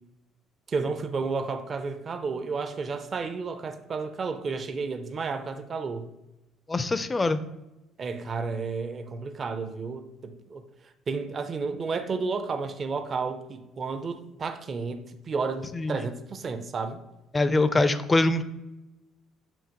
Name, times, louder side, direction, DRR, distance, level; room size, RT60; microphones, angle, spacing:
voice 1, 0.7-6.1 8.0-10.6 11.1-17.0, right 4 dB, 40° right, 8 dB, 0.4 m, -32 dB
voice 2, 6.7-7.4 15.7-16.0 17.3-18.4, left 2 dB, 20° left, 12 dB, 0.4 m, -23 dB
7.1 x 2.5 x 2.9 m, 0.98 s
supercardioid pair, 90°, 0 cm